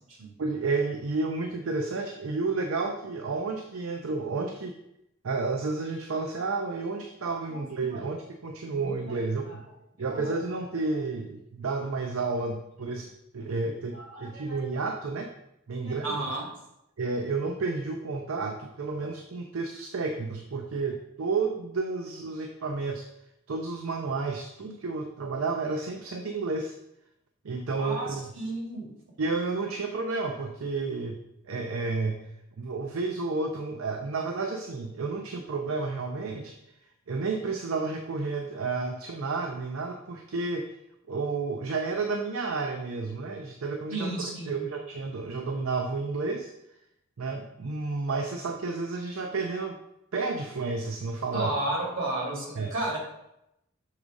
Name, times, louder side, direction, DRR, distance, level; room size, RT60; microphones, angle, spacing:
voice 1, 0.4-4.7 5.2-9.6 10.0-15.3 15.7-16.2 17.0-23.1 23.5-26.7 27.4-28.3 29.2-31.2 31.5-32.2 32.6-36.6 37.1-40.7 41.1-44.1 44.5-46.5 47.2-49.8 50.1-51.5 52.6-52.7, right 3 dB, 90° right, 4 dB, 0.6 m, -31 dB
voice 2, 7.5-8.1 8.7-9.2 9.5-9.6 10.1-10.4 13.9-14.8 15.8-16.5 27.8-28.9 43.9-44.7 51.3-53.0, right 2 dB, 75° right, -1 dB, 2.2 m, -33 dB
6.6 x 3.6 x 5.1 m, 0.84 s
head